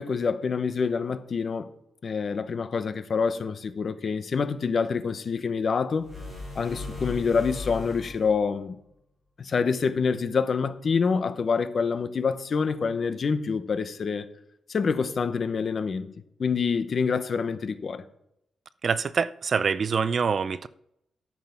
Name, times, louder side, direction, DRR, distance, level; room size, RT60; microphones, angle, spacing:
voice 1, 0.0-1.7 2.0-6.1 6.5-8.8 9.4-14.3 14.7-18.0, left 5 dB, 40° left, 0.9 m, -26 dB
sound 1, 6.0-8.4, left 3 dB, ahead, 5.8 m, -37 dB
voice 2, 18.8-20.7, right 5 dB, 40° right, 0.4 m, -25 dB
13.0 x 7.5 x 5.9 m
wide cardioid pair, 150°, 0 cm